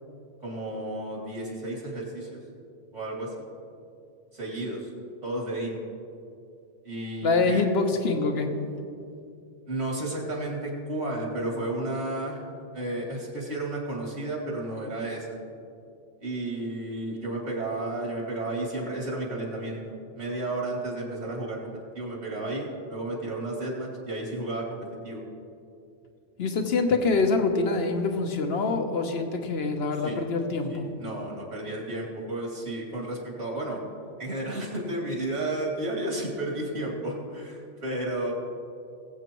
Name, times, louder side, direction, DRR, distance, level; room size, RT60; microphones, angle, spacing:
voice 1, 0.4-2.4 2.9-3.3 4.3-4.9 5.2-5.8 6.8-7.6 9.7-12.4 12.7-15.4 16.2-19.8 20.2-21.6 21.9-24.7 25.0-25.2 30.0-30.2 30.7-33.8 34.2-38.3, right 1 dB, 70° right, -2 dB, 2.9 m, -32 dB
voice 2, 7.2-8.5 26.4-30.9, left 3 dB, 55° left, 5 dB, 1.2 m, -25 dB
21.0 x 8.1 x 3.0 m, 2.5 s
omnidirectional pair, 1.3 m